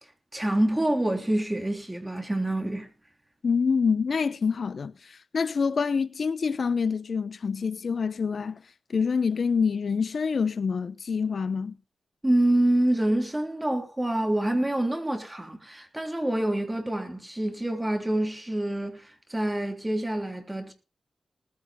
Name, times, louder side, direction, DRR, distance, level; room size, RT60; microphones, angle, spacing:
voice 1, 0.3-2.9 12.2-19.0 19.3-20.7, right 1 dB, 15° right, 3.3 m, -26 dB
voice 2, 3.4-8.6 8.9-11.7, left 5 dB, 65° left, 0.6 m, -26 dB
20.0 x 15.0 x 2.2 m
cardioid pair, 75°, 0 cm